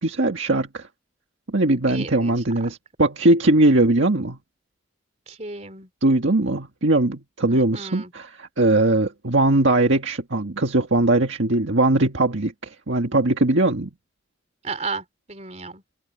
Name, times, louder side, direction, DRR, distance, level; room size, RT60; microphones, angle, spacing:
voice 1, 0.0-0.9 1.5-4.4 6.0-13.9, right 2 dB, 80° right, 1.7 m, -20 dB
voice 2, 1.9-2.4 2.7-2.8 5.3-5.9 7.5-8.1 14.6-15.8, right 4 dB, 35° right, 3.5 m, -34 dB
open air
head